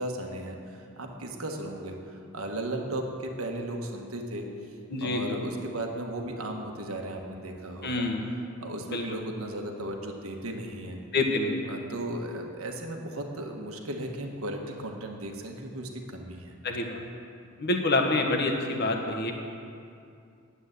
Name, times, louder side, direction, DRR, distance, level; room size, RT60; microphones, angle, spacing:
voice 1, 0.0-4.5 5.0-8.1 8.6-11.0 11.7-16.6, right 1 dB, 75° right, 2 dB, 1.4 m, -36 dB
voice 2, 4.9-5.4 7.8-8.3 8.9-9.2 11.1-11.7 16.6-17.0 17.6-19.3, left 2 dB, 50° left, 3 dB, 1.4 m, -27 dB
10.0 x 8.3 x 8.1 m, 2.5 s
head